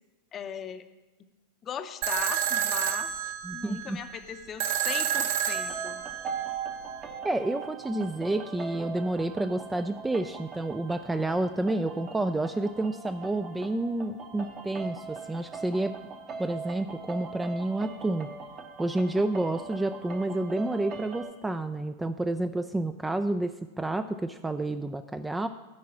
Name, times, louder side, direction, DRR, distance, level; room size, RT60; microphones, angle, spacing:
voice 1, 0.3-0.8 1.6-3.1 3.5-6.0, left 8 dB, 25° left, 9 dB, 0.6 m, -38 dB
sound 1, 2.0-7.0, right 9 dB, 50° right, 0.6 m, -30 dB
voice 2, 3.4-4.0 7.2-16.0 16.4-18.3 18.8-25.5, right 2 dB, 10° right, 10 dB, 0.3 m, -29 dB
sound 2, 5.5-21.3, right 5 dB, 25° right, 0.9 m, -41 dB
9.5 x 4.7 x 7.2 m, 1.1 s
figure-of-eight pair, 90°, 0 cm